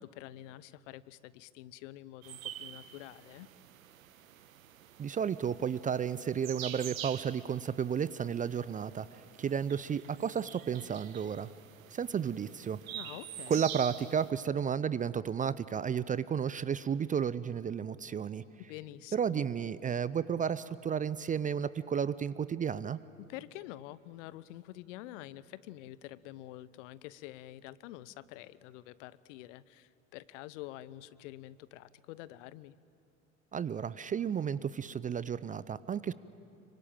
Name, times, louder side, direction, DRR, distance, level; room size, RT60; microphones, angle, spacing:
voice 1, 0.0-3.5 12.9-13.6 18.7-19.5 23.2-32.8, left 15 dB, 60° left, 18 dB, 0.9 m, -47 dB
sound 1, 2.2-14.3, right 11 dB, 75° right, 1.3 m, -47 dB
voice 2, 5.0-11.5 11.9-12.8 13.5-18.4 19.1-23.0 33.5-36.1, right 7 dB, 20° right, 17 dB, 0.5 m, -32 dB
26.0 x 24.0 x 8.9 m, 2.8 s
figure-of-eight pair, 75°, 41 cm